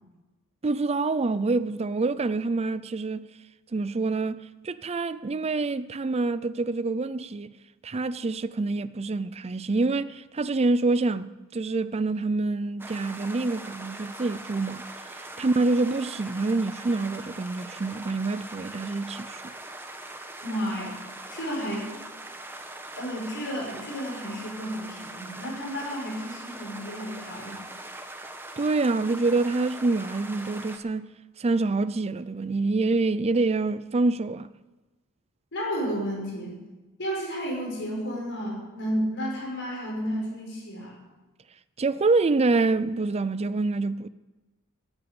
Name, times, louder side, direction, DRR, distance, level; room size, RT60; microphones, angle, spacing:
voice 1, 0.6-3.3 3.7-7.5 7.8-14.8 15.4-19.4 28.6-31.1 31.4-34.5 41.8-44.1, right 3 dB, 30° right, 0.4 m, -26 dB
sound 1, 12.8-30.8, right 1 dB, 10° right, 1.1 m, -41 dB
voice 2, 20.4-20.9 21.3-21.9 22.9-27.6 35.5-36.6 37.0-41.0, equal, 55° left, 5.4 m, -32 dB
13.5 x 9.0 x 8.8 m
head